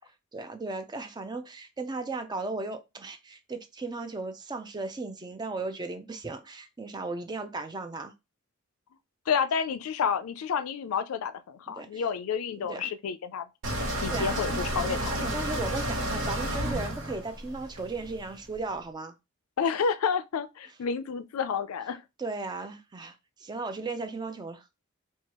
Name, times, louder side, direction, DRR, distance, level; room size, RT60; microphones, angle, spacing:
voice 1, 0.3-8.1 11.7-12.0 12.6-12.8 13.8-14.4 15.2-19.2 22.2-24.7, right 3 dB, 20° right, 0.4 m, -36 dB
voice 2, 9.3-13.5 13.8-15.2 19.6-22.0, left 6 dB, 85° left, 0.4 m, -30 dB
sound 1, 13.6-18.6, right 1 dB, 80° right, 0.9 m, -31 dB
4.4 x 2.3 x 2.9 m
head